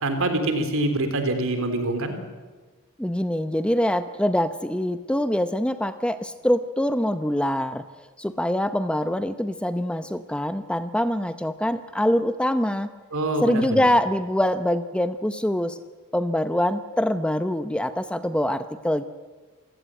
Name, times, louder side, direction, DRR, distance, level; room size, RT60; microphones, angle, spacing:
voice 1, 0.0-2.2 13.1-13.8, right 2 dB, 65° right, 7 dB, 3.6 m, -25 dB
voice 2, 3.0-7.8 8.2-12.9 13.4-15.8 16.1-19.0, left 1 dB, 5° left, 11 dB, 0.7 m, -24 dB
27.0 x 16.0 x 9.1 m, 1.3 s
head